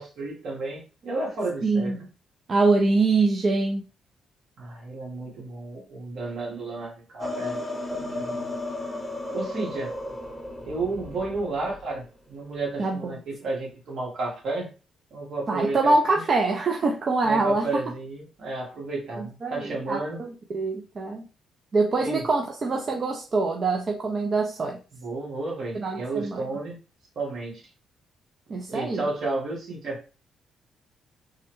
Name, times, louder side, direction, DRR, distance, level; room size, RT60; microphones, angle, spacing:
voice 1, 0.0-2.1 4.6-7.6 7.9-8.5 9.3-9.9 10.7-14.7 15.1-16.2 17.2-20.2 22.0-22.3 25.0-26.8 27.1-27.6 28.7-30.0, right 3 dB, 65° right, 1.5 m, -32 dB
voice 2, 1.6-2.0 2.5-3.8 12.8-13.2 15.5-17.8 19.2-21.2 21.7-24.8 25.7-26.4 28.5-29.1, right 3 dB, 40° right, 0.5 m, -24 dB
sound 1, 7.2-12.0, left 2 dB, 15° left, 0.8 m, -34 dB
3.4 x 2.2 x 3.0 m
cardioid pair, 90°, 0 cm